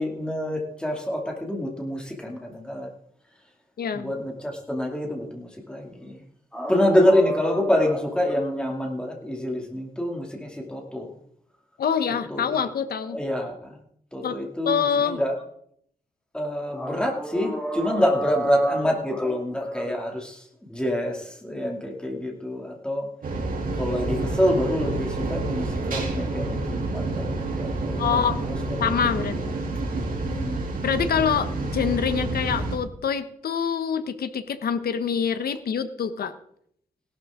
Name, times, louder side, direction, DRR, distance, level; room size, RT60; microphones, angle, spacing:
voice 1, 0.0-2.9 3.9-6.2 6.5-11.2 12.1-12.6 13.1-13.8 14.1-15.4 16.3-23.1 23.7-29.5 30.2-30.7, equal, 5° left, 0 dB, 2.7 m, -26 dB
voice 2, 3.8-4.1 11.8-13.2 14.2-14.4 14.6-15.2 28.0-28.4 28.8-29.6 30.8-36.3, left 7 dB, 85° left, 10 dB, 1.2 m, -25 dB
sound 1, 23.2-32.8, right 2 dB, 65° right, 3.0 m, -28 dB
17.0 x 12.0 x 3.8 m, 0.68 s
wide cardioid pair, 145°, 15 cm